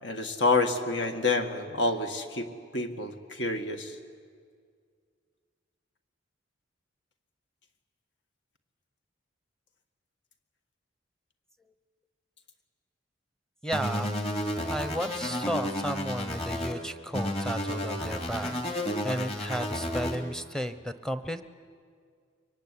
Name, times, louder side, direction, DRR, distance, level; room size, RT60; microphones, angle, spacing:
voice 1, 0.0-4.0, left 3 dB, 65° left, 6 dB, 2.0 m, -28 dB
voice 2, 13.6-14.1 14.7-21.4, equal, 5° left, 10 dB, 0.9 m, -33 dB
sound 1, 13.7-16.7 17.1-20.2, equal, 30° left, 2.8 m, -32 dB
24.5 x 23.5 x 10.0 m, 2.1 s
head